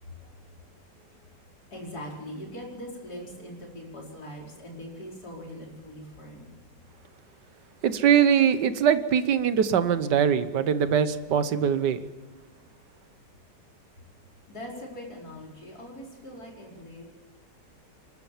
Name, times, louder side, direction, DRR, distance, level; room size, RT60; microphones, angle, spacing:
voice 1, 0.0-6.5 14.0-14.1 14.5-17.0, equal, 60° left, -2 dB, 5.2 m, -42 dB
voice 2, 7.8-12.0, right 8 dB, 75° right, 12 dB, 1.6 m, -22 dB
28.0 x 13.0 x 7.4 m, 1.2 s
omnidirectional pair, 1.8 m